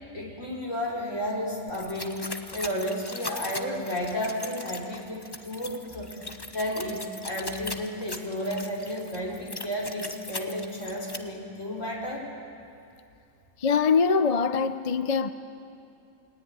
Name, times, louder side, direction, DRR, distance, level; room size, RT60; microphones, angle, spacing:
voice 1, 0.1-12.3, equal, 65° left, -1 dB, 5.0 m, -32 dB
sound 1, 1.7-11.2, left 2 dB, 20° left, 1.2 m, -39 dB
voice 2, 13.6-15.3, left 5 dB, 35° left, 11 dB, 0.7 m, -23 dB
29.5 x 20.0 x 9.7 m, 2.6 s
omnidirectional pair, 1.4 m